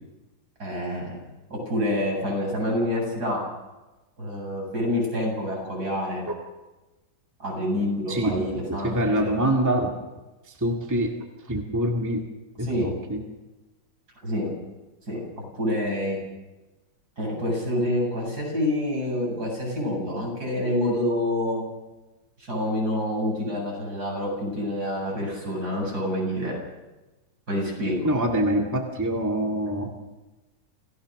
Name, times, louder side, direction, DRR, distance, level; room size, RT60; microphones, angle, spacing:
voice 1, 0.6-1.2 1.5-3.4 4.2-6.2 7.4-9.2 12.6-12.9 14.2-14.5 15.1-15.2 15.6-16.2 17.2-21.6 22.4-26.6 27.5-28.1, left 1 dB, 55° right, -1 dB, 8.7 m, -27 dB
voice 2, 8.1-8.4 8.7-9.9 10.5-11.2 11.5-12.3 12.6-13.2 28.0-29.9, right 1 dB, 10° right, 0 dB, 1.9 m, -25 dB
28.5 x 16.5 x 6.5 m, 1.1 s
omnidirectional pair, 2.0 m